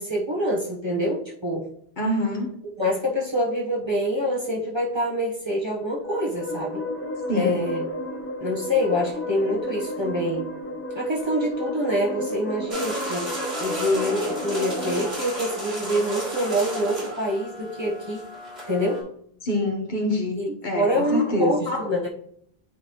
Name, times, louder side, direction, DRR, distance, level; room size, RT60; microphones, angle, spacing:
voice 1, 0.0-1.7 2.8-6.8 7.3-7.9 8.4-10.5 10.9-18.2 18.7-19.1 20.3-22.1, equal, 25° right, -4 dB, 1.0 m, -26 dB
voice 2, 2.0-2.5 7.3-7.6 19.4-21.8, left 1 dB, 50° left, 2 dB, 1.1 m, -26 dB
sound 1, 5.8-15.1, left 1 dB, 15° left, 0.5 m, -32 dB
sound 2, 12.7-19.0, equal, 75° right, 3.3 m, -33 dB
9.3 x 4.0 x 3.0 m, 0.68 s
omnidirectional pair, 1.1 m